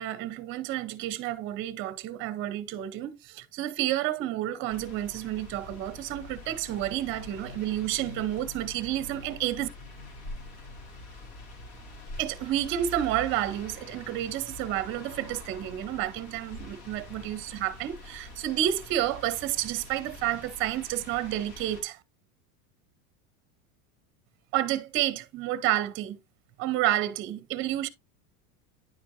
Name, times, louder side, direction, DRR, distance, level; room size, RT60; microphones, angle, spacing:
voice 1, 0.0-9.7 12.2-22.0 24.5-26.2 26.6-27.9, right 13 dB, 30° right, 0.6 m, -30 dB
sound 1, 4.7-21.8, left 2 dB, 75° left, 3.4 m, -45 dB
9.9 x 4.4 x 2.5 m
supercardioid pair, 160°, 44 cm